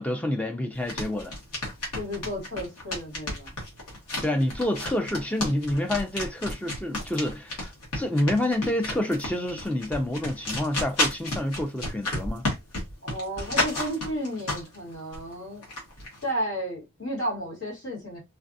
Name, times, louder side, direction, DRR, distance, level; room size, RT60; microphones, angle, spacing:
voice 1, 0.0-1.3 4.2-12.4, left 1 dB, 5° left, 0.4 m, -28 dB
sound 1, 0.7-14.8 15.1-16.2, left 1 dB, 90° left, 1.4 m, -31 dB
voice 2, 1.9-3.5 13.0-15.6 16.2-18.2, equal, 75° left, 2.0 m, -32 dB
3.2 x 2.3 x 2.6 m
head